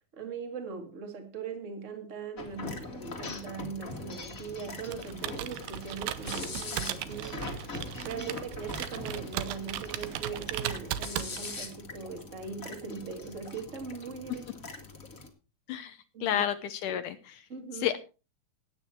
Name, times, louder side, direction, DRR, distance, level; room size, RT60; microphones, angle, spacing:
voice 1, 0.1-7.5 8.0-14.5 16.1-16.4 17.5-17.9, right 5 dB, 25° right, 2.0 m, -40 dB
sound 1, 2.4-15.3, left 3 dB, 25° left, 2.0 m, -42 dB
Computer keyboard, 4.8-11.7, right 12 dB, 80° right, 2.7 m, -37 dB
voice 2, 15.7-17.4 17.8-18.0, left 10 dB, 70° left, 2.1 m, -31 dB
15.5 x 9.8 x 4.5 m
omnidirectional pair, 4.2 m